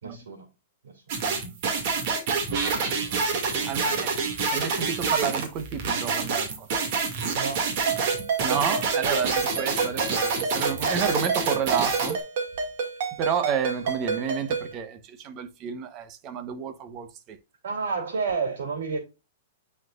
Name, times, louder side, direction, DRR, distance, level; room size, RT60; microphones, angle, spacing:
voice 1, 0.0-0.5 0.8-1.0 2.7-4.0 7.3-7.7 17.6-19.0, right 4 dB, 85° right, 2.6 m, -32 dB
sound 1, 1.1-12.2, right 4 dB, 50° right, 2.2 m, -27 dB
voice 2, 1.2-1.6 2.5-2.6 2.9-3.2 3.7-4.1 4.5-6.7 8.4-12.2 13.2-17.4, right 7 dB, 30° right, 1.1 m, -31 dB
Ringtone, 7.9-14.7, right 5 dB, 65° right, 2.2 m, -30 dB
9.3 x 4.7 x 2.5 m
hypercardioid pair, 150°, 0 cm